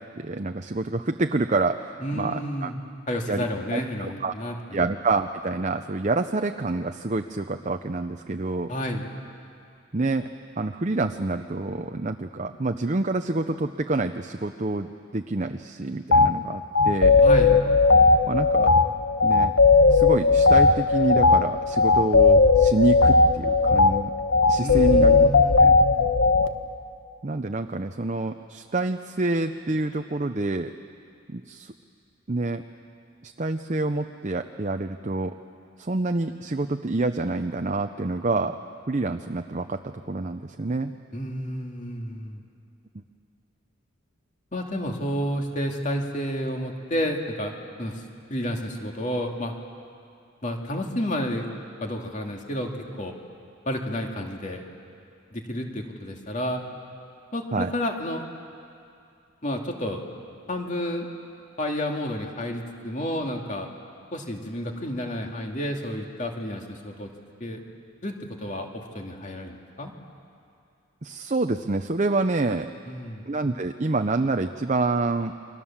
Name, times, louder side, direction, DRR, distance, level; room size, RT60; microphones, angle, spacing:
voice 1, 0.1-2.7 3.3-3.4 3.7-4.3 4.7-8.7 9.9-10.3 10.6-17.2 18.3-18.7 19.2-19.5 19.9-24.1 24.5-25.3 25.6-25.7 27.2-30.7 31.3-31.7 32.3-32.6 33.2-35.3 35.8-38.6 38.9-39.8 40.1-40.9 57.5-57.7 71.0-72.7 73.3-75.3, right 3 dB, 35° right, 6 dB, 0.6 m, -27 dB
voice 2, 2.0-2.8 3.1-4.9 8.7-9.1 17.2-17.6 24.6-26.2 41.1-42.4 44.5-47.5 47.8-48.0 48.3-49.6 50.4-51.5 51.8-52.7 53.0-53.1 53.7-54.6 55.3-56.6 57.3-58.2 59.4-60.0 60.5-61.1 61.6-63.7 64.1-67.1 67.4-67.6 68.0-69.9 72.9-73.3, equal, 35° left, 2 dB, 2.5 m, -30 dB
sound 1, 16.1-16.3 16.7-26.5, left 4 dB, 80° left, 1.4 m, -17 dB
29.5 x 24.5 x 7.3 m, 2.5 s
head